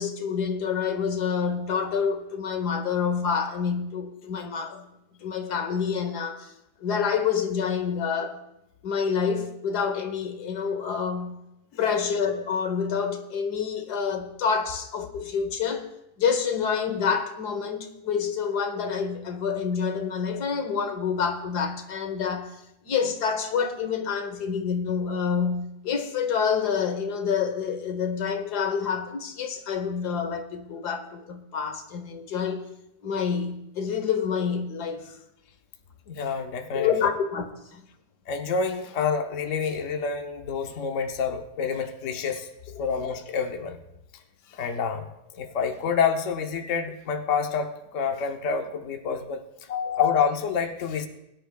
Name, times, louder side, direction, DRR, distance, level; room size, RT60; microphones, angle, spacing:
voice 1, 0.0-4.8 5.2-6.5 6.8-8.4 8.8-11.4 11.8-15.9 16.2-22.5 22.8-32.6 33.0-35.1 36.7-37.4 37.7-37.8 49.7-50.0, left 6 dB, 90° left, 1.7 m, -27 dB
voice 2, 36.1-36.9 38.3-42.5 42.8-43.8 44.5-49.4 50.0-51.1, left 6 dB, 55° left, 1.2 m, -28 dB
21.5 x 10.5 x 2.3 m
omnidirectional pair, 1.7 m